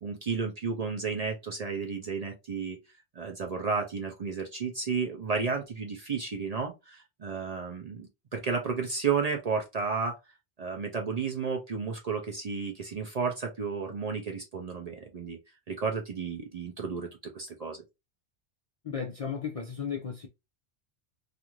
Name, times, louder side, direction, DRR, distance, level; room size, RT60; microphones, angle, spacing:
voice 1, 0.0-2.8 3.2-10.2 10.6-15.4 15.7-17.8, right 5 dB, 50° right, 0.5 m, -32 dB
voice 2, 18.8-20.3, left 6 dB, 50° left, 0.4 m, -34 dB
2.5 x 2.4 x 2.9 m
omnidirectional pair, 1.1 m